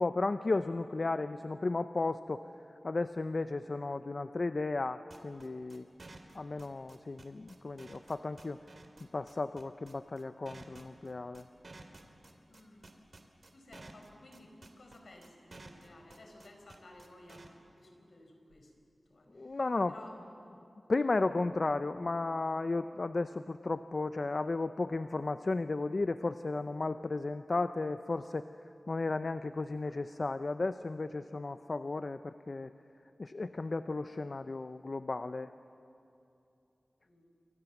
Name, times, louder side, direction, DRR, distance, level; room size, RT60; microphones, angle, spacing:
voice 1, 0.0-2.4 2.8-5.8 6.3-8.6 9.1-11.4 19.3-19.9 20.9-28.5 28.9-32.7 33.2-35.5, left 3 dB, 50° left, 11 dB, 0.6 m, -34 dB
sound 1, 5.1-17.5, right 2 dB, 50° right, 2.6 m, -52 dB
voice 2, 12.5-12.9 13.5-18.7 19.1-19.6 19.9-20.5 37.0-37.4, left 1 dB, 70° left, 3 dB, 4.5 m, -55 dB
28.5 x 23.0 x 7.2 m, 2.7 s
wide cardioid pair, 85°, 0 cm